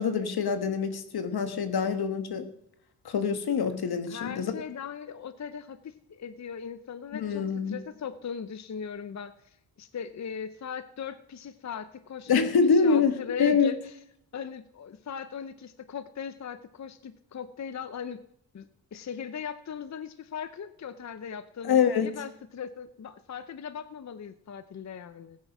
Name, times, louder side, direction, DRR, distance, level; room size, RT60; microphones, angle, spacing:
voice 1, 0.0-2.5 3.0-4.5 7.1-7.7 12.3-13.7 21.6-22.2, left 6 dB, 80° left, 9 dB, 1.5 m, -25 dB
voice 2, 4.1-13.9 14.3-18.2 18.5-25.4, left 7 dB, 45° left, 12 dB, 0.7 m, -39 dB
15.0 x 9.5 x 5.9 m, 0.74 s
cardioid pair, 75°, 37 cm